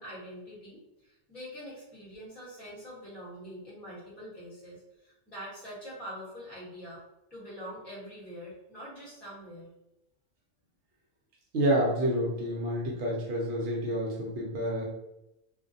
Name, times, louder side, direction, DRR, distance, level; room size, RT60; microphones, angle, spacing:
voice 1, 0.0-7.0 7.3-9.7, equal, ahead, -9 dB, 0.9 m, -44 dB
voice 2, 11.5-14.8, right 1 dB, 60° right, -3 dB, 0.8 m, -28 dB
2.4 x 2.1 x 2.6 m, 0.89 s
omnidirectional pair, 1.3 m